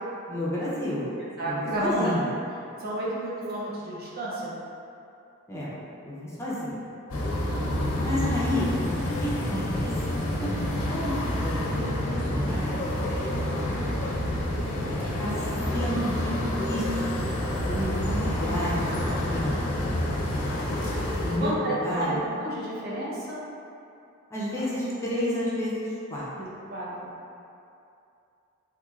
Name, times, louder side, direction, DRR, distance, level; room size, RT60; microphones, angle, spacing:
voice 1, 0.3-1.1 1.4-2.3 5.5-5.7 6.0-6.8 8.0-8.7 9.2-9.9 10.4-11.1 11.4-12.8 15.2-15.3 15.7-16.3 16.7-17.3 17.6-18.9 19.3-19.8 21.2-22.3 24.3-26.3, left 1 dB, 15° left, -8 dB, 0.5 m, -31 dB
voice 2, 1.4-2.1 2.8-4.5 21.4-23.4 26.4-27.1, right 1 dB, 50° right, -7 dB, 0.7 m, -31 dB
sound 1, 7.1-21.4, left 1 dB, 80° left, 0.6 m, -28 dB
3.7 x 3.0 x 2.4 m, 2.6 s
head